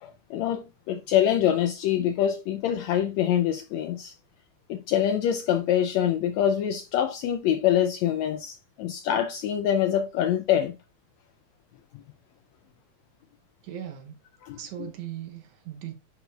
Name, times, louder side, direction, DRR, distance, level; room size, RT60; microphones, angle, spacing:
voice 1, 0.0-4.1 4.7-10.7 11.9-12.0 14.4-14.9, left 10 dB, 80° left, 1.6 m, -25 dB
voice 2, 13.6-14.2 14.5-15.9, right 10 dB, 75° right, 2.1 m, -38 dB
10.5 x 4.9 x 2.3 m
omnidirectional pair, 3.5 m